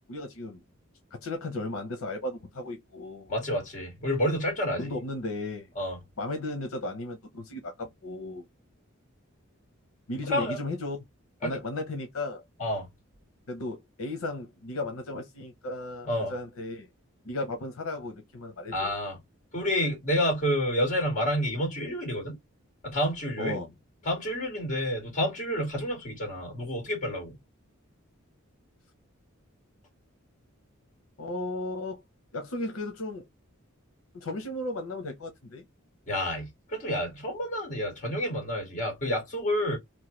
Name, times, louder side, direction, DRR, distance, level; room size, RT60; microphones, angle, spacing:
voice 1, 0.1-0.6 1.2-3.3 4.8-5.7 6.2-8.4 10.1-11.0 11.4-12.4 13.5-16.9 17.2-18.9 23.4-23.7 31.2-32.0 32.3-33.2 34.1-35.6, left 2 dB, 85° left, 0.8 m, -35 dB
voice 2, 3.3-4.9 5.8-6.0 10.3-10.6 11.4-11.5 12.6-12.9 16.0-16.3 18.7-19.2 19.5-22.4 22.8-23.6 24.0-27.3 36.1-39.8, equal, 40° left, 1.9 m, -29 dB
3.1 x 2.2 x 3.1 m
head